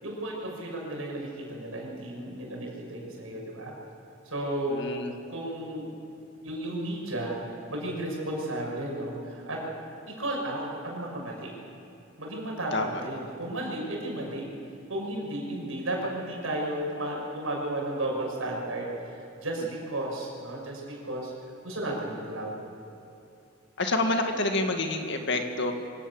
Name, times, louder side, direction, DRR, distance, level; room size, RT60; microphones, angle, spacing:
voice 1, 0.0-3.7 4.2-4.8 5.3-5.9 6.4-9.6 10.2-11.5 12.2-14.4 14.9-18.9 19.2-21.3 21.6-22.5, right 1 dB, 80° right, -1 dB, 6.6 m, -33 dB
voice 2, 4.7-5.1 12.7-13.0 23.8-25.7, left 2 dB, 60° left, 5 dB, 1.9 m, -28 dB
25.0 x 17.5 x 7.2 m, 2.8 s
head